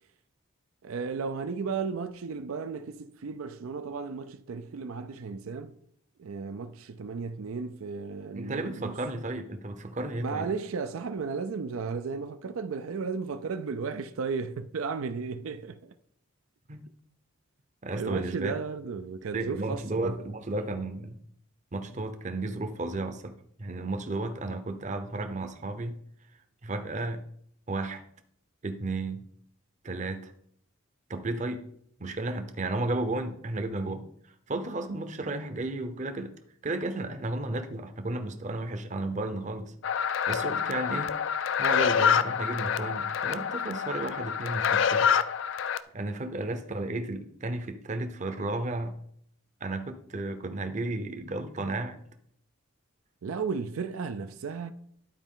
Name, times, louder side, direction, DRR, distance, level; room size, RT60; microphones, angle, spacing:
voice 1, 0.8-5.8 6.2-9.0 10.2-15.9 17.9-20.3 53.2-54.7, right 5 dB, 90° right, 0.5 m, -34 dB
voice 2, 8.3-10.5 16.7-16.9 17.8-18.5 19.3-21.2 21.7-26.0 26.6-27.2 27.7-28.0 28.6-29.2 29.8-30.3 31.1-31.6 32.0-34.0 34.5-36.3 36.6-39.7 40.3-41.2 41.6-45.2 45.9-49.0 49.6-52.0, right 2 dB, 35° right, 0.6 m, -33 dB
sound 1, 39.8-45.8, left 7 dB, 60° left, 0.4 m, -27 dB
11.5 x 4.4 x 3.7 m
head